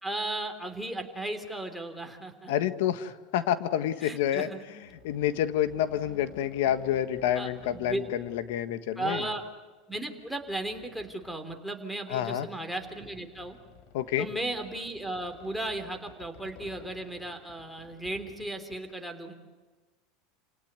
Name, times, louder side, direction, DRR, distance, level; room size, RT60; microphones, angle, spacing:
voice 1, 0.0-2.5 4.0-4.6 7.3-8.0 9.0-9.4 9.9-13.6 14.2-19.3, right 1 dB, ahead, 3 dB, 3.5 m, -35 dB
voice 2, 2.5-4.5 5.0-9.3 12.1-12.5 13.9-14.3, left 11 dB, 75° left, 11 dB, 1.5 m, -28 dB
sound 1, 4.8-8.6 9.4-9.5 10.2-11.6 12.6-18.7, left 5 dB, 60° left, 5.6 m, -54 dB
30.0 x 18.0 x 9.6 m, 1.3 s
supercardioid pair, 135°, 0 cm